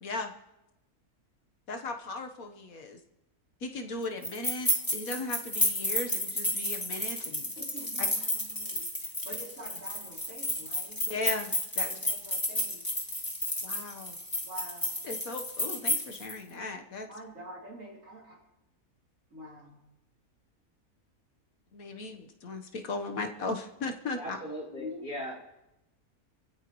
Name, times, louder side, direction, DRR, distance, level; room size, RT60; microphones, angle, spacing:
voice 1, 0.0-0.3 1.7-3.0 3.6-7.5 8.0-8.1 11.1-11.9 13.6-14.2 15.0-17.1 21.7-24.4, left 3 dB, 70° left, 4 dB, 1.7 m, -37 dB
sound 1, 4.2-16.3, left 1 dB, 15° left, 1.8 m, -32 dB
voice 2, 7.6-11.0 11.9-12.8 14.4-15.0 17.1-18.4 19.3-19.8 24.8-25.1, equal, 60° right, -4 dB, 3.8 m, -46 dB
voice 3, 24.1-25.3, equal, 40° left, -7 dB, 4.3 m, -38 dB
25.5 x 15.5 x 3.1 m, 0.94 s
omnidirectional pair, 1.6 m